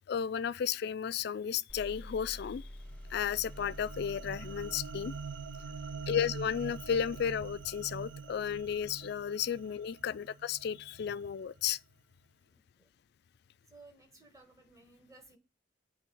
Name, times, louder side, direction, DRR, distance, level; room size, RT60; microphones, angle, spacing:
voice 1, 0.1-2.6 3.1-5.1 6.1-11.8, left 8 dB, 60° left, 0.3 m, -33 dB
sound 1, 1.7-9.2, left 1 dB, 5° left, 0.7 m, -49 dB
sound 2, 2.9-11.3, right 5 dB, 80° right, 0.6 m, -45 dB
voice 2, 5.7-6.1 10.0-10.2 12.5-12.9 13.7-15.4, right 3 dB, 15° right, 1.7 m, -59 dB
8.3 x 3.2 x 5.5 m
head